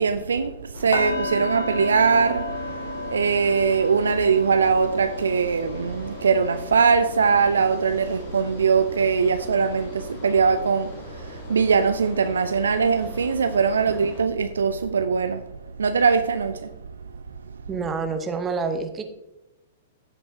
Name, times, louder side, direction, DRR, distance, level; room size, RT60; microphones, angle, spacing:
voice 1, 0.0-15.4 15.8-16.7, right 5 dB, 65° right, 0.4 m, -21 dB
sound 1, 0.7-14.2, left 2 dB, 50° left, 2.5 m, -41 dB
sound 2, 0.9-10.8 11.2-11.5 11.9-12.0, left 2 dB, 65° left, 1.2 m, -35 dB
voice 2, 17.7-19.0, right 4 dB, 15° right, 0.9 m, -28 dB
15.5 x 5.3 x 2.8 m
figure-of-eight pair, 105°, 0 cm